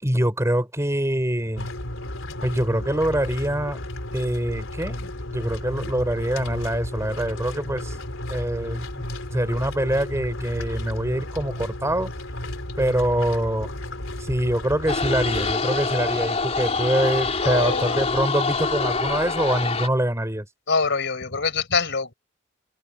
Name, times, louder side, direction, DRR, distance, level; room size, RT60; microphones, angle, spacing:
voice 1, 0.0-1.7 2.4-3.8 4.1-8.0 8.3-9.1 9.3-12.1 12.8-13.7 14.2-20.5, right 1 dB, 15° right, 4.6 m, -24 dB
sound 1, 1.6-15.5, left 1 dB, 90° left, 3.7 m, -33 dB
sound 2, 14.9-19.9, left 4 dB, 35° left, 3.5 m, -25 dB
voice 2, 17.4-18.0 20.7-22.1, left 4 dB, 65° left, 4.3 m, -24 dB
open air
head